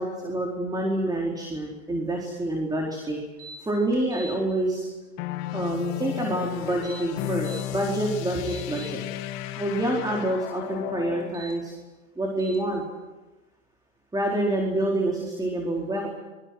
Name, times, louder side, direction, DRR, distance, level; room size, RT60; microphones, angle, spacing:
voice 1, 0.0-3.2 3.6-4.9 5.5-9.0 9.6-11.7 12.2-12.8 14.1-16.1, right 1 dB, 10° right, -1 dB, 4.4 m, -27 dB
sound 1, 3.4-3.6 3.9-4.3 6.7-7.6 8.1-8.9 11.2-11.5 12.4-12.6, right 2 dB, 75° right, 7.7 m, -43 dB
sound 2, 5.2-11.4, left 14 dB, 60° left, 2.3 m, -33 dB
27.5 x 23.5 x 6.3 m, 1.2 s
supercardioid pair, 115°, 38 cm